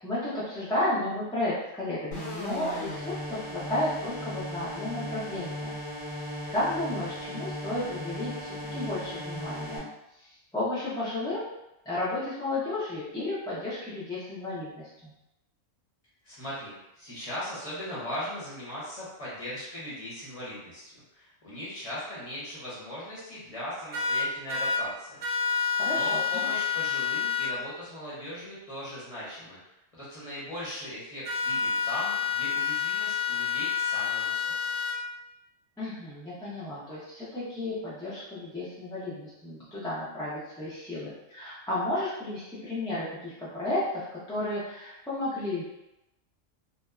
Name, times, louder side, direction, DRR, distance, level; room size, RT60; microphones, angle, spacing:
voice 1, 0.0-5.8 6.1-9.9 10.2-11.5 11.9-15.1 25.8-26.5 35.8-45.6, left 1 dB, 5° left, -10 dB, 0.3 m, -33 dB
sound 1, 2.1-9.8, left 1 dB, 65° left, 0.9 m, -37 dB
voice 2, 16.2-25.1 25.9-34.5, equal, 35° left, -8 dB, 0.7 m, -39 dB
sound 2, 23.9-24.8 25.2-27.5 31.2-34.9, left 6 dB, 80° right, 1.0 m, -28 dB
2.8 x 2.0 x 2.3 m, 0.91 s
omnidirectional pair, 1.3 m